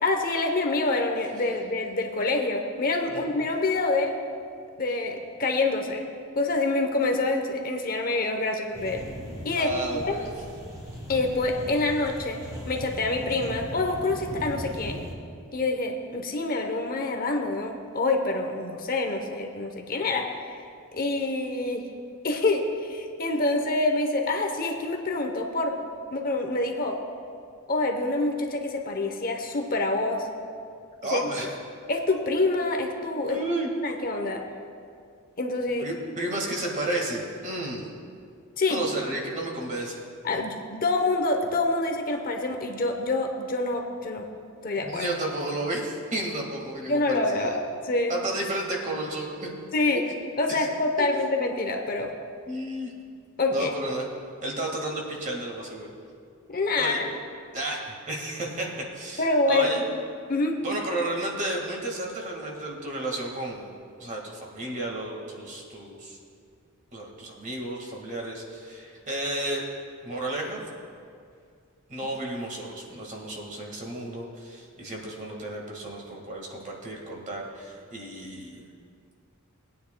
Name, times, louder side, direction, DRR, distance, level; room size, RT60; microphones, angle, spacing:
voice 1, 0.0-4.1 4.8-6.0 6.4-9.0 9.4-9.7 10.0-10.2 11.1-12.4 12.7-15.0 15.5-20.5 20.9-21.8 22.2-25.8 26.1-27.0 27.7-30.3 31.1-31.3 31.9-33.4 33.8-34.4 35.4-35.8 38.6-38.9 40.2-44.3 44.6-45.0 46.9-47.6 47.8-48.1 49.7-50.0 50.4-52.1 53.4-53.7 56.5-57.0 59.2-59.8 60.3-60.6, left 2 dB, 45° left, 3 dB, 0.8 m, -26 dB
sound 1, 8.7-15.1, equal, 15° right, 1.8 m, -39 dB
voice 2, 9.6-10.3 31.0-31.5 33.3-33.7 35.8-37.9 38.7-40.0 44.8-47.6 48.1-49.5 50.5-50.7 52.4-52.9 53.5-54.1 54.4-55.9 56.8-57.0 57.5-58.7 58.9-59.8 60.6-63.7 64.0-66.2 66.9-69.6 70.0-70.6 71.9-78.6, right 1 dB, 35° right, -1 dB, 1.7 m, -32 dB
19.5 x 9.4 x 2.2 m, 2.2 s
head